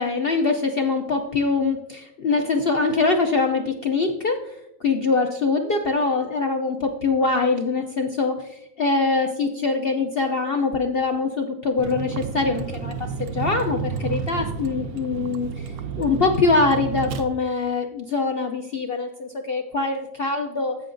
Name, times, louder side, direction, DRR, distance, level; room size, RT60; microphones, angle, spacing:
voice 1, 0.0-20.8, left 3 dB, 60° left, 4 dB, 0.6 m, -23 dB
Vehicle, 11.8-17.2, right 6 dB, 75° right, 1.1 m, -31 dB
16.0 x 5.6 x 2.6 m, 0.83 s
omnidirectional pair, 1.6 m